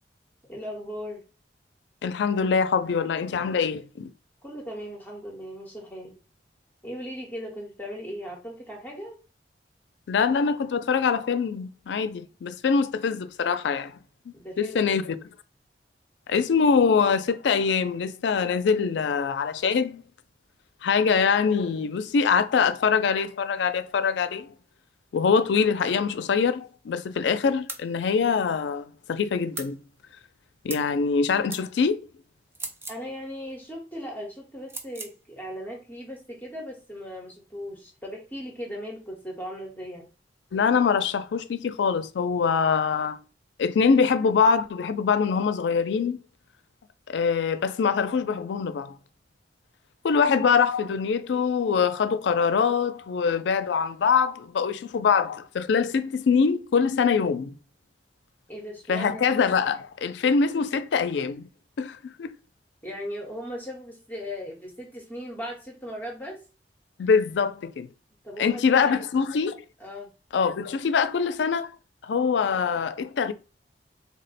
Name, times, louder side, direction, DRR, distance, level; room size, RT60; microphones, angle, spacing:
voice 1, 0.5-1.2 4.4-6.2 6.8-9.2 14.3-15.0 32.9-40.1 58.5-59.4 62.8-66.4 68.2-69.0 69.8-70.1, equal, 10° left, 0.9 m, -38 dB
voice 2, 2.0-4.1 10.1-13.9 14.3-15.0 16.3-20.0 20.8-24.5 25.1-29.8 30.6-32.0 40.5-43.2 43.6-46.2 47.1-49.0 50.0-57.5 58.9-61.5 61.8-62.3 67.0-67.9 68.4-69.6 70.3-71.7 72.0-73.3, left 5 dB, 85° left, 0.4 m, -24 dB
sound 1, 27.7-27.9 29.5-29.7 30.7-30.9 31.5-31.6 32.5-33.0 34.7-35.1, right 2 dB, 15° right, 0.5 m, -37 dB
3.5 x 2.1 x 4.0 m
head